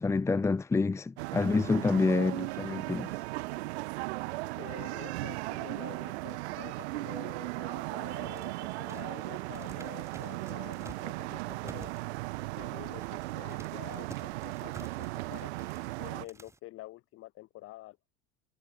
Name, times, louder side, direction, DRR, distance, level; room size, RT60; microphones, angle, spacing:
voice 1, 0.0-3.2, left 4 dB, 10° left, 0.9 m, -28 dB
sound 1, 1.2-16.3, right 21 dB, 85° right, 1.1 m, -37 dB
sound 2, 2.5-8.5, right 33 dB, 55° right, 5.2 m, -47 dB
voice 2, 4.6-11.9 12.6-15.5 16.0-18.0, left 17 dB, 40° left, 5.8 m, -48 dB
sound 3, 8.1-16.6, right 3 dB, 10° right, 3.7 m, -52 dB
supercardioid pair, 160°, 33 cm